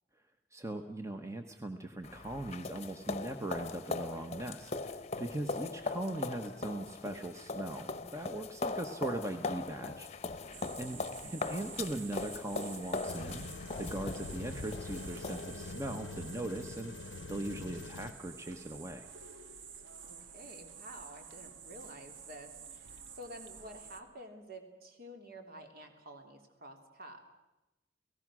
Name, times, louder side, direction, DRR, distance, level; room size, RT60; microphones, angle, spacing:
voice 1, 0.5-10.1 10.3-13.5 13.8-19.1, right 1 dB, 15° right, 6 dB, 1.2 m, -40 dB
sound 1, 2.0-15.7, left 3 dB, 35° left, 1.0 m, -40 dB
sound 2, 10.5-24.0, right 6 dB, 90° right, 1.6 m, -50 dB
voice 2, 10.8-11.2 19.7-27.2, right 1 dB, 55° right, 4 dB, 3.2 m, -50 dB
sound 3, 13.1-18.1, left 3 dB, 75° left, 0.8 m, -44 dB
30.0 x 18.0 x 6.3 m, 1.0 s
head